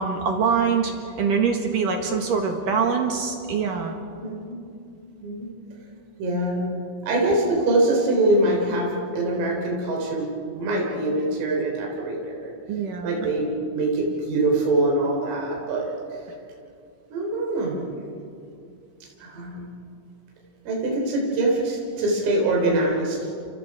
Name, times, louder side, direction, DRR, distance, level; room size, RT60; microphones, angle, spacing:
voice 1, 0.0-3.9 12.7-13.2, right 6 dB, 60° right, 3 dB, 2.3 m, -24 dB
voice 2, 4.2-4.6 5.2-5.5 6.2-6.7 7.0-12.5 13.0-15.9 17.1-17.8 19.2-19.7 20.7-23.2, right 2 dB, 85° right, -1 dB, 6.4 m, -24 dB
29.5 x 28.0 x 4.9 m, 2.5 s
omnidirectional pair, 5.7 m